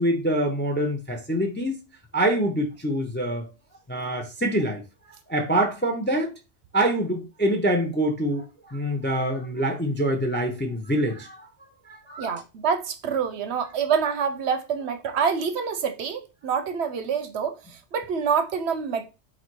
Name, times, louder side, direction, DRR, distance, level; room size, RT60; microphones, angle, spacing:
voice 1, 0.0-1.8 2.1-3.5 3.9-4.8 5.3-6.3 6.7-11.5 11.9-12.4, right 1 dB, 15° left, 0.5 m, -25 dB
voice 2, 12.2-19.1, right 6 dB, 65° right, 0.8 m, -26 dB
4.1 x 2.7 x 4.5 m
omnidirectional pair, 1.3 m